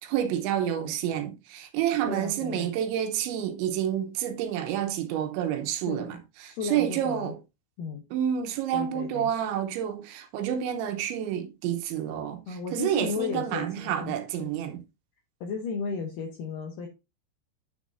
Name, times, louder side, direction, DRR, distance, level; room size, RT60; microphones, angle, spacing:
voice 1, 0.0-7.4 8.1-14.8, right 10 dB, 85° right, 3.3 m, -29 dB
voice 2, 2.0-2.7 5.9-6.2 6.4-7.3 7.8-8.0 8.7-9.3 12.5-14.5 15.4-16.9, left 5 dB, 80° left, 1.9 m, -34 dB
10.0 x 6.2 x 2.6 m
omnidirectional pair, 5.2 m